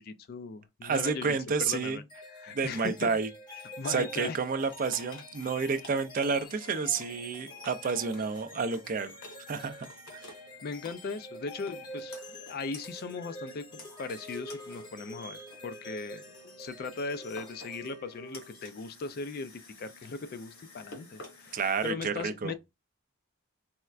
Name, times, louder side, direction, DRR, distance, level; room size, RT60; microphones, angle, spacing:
voice 1, 0.0-2.0 2.4-3.1 3.8-4.4 10.6-22.6, left 4 dB, 45° left, 0.3 m, -39 dB
voice 2, 0.8-2.0 2.5-3.3 3.9-9.1 9.5-9.9 10.1-10.3 21.5-22.5, right 5 dB, 40° right, 0.4 m, -30 dB
sound 1, 2.1-18.7, left 1 dB, 20° left, 0.7 m, -47 dB
sound 2, 4.2-21.9, left 2 dB, 60° left, 1.2 m, -53 dB
4.2 x 2.1 x 2.4 m
head